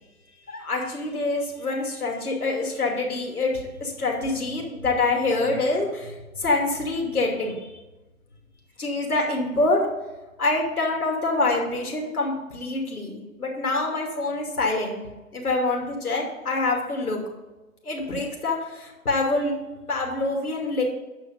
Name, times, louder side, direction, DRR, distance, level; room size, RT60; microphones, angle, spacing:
voice 1, 0.5-7.7 8.8-9.8 10.4-15.0 15.3-17.2 17.8-19.5 19.9-20.8, left 2 dB, 85° left, 0 dB, 2.7 m, -26 dB
9.0 x 6.5 x 5.2 m, 1.1 s
figure-of-eight pair, 130°, 43 cm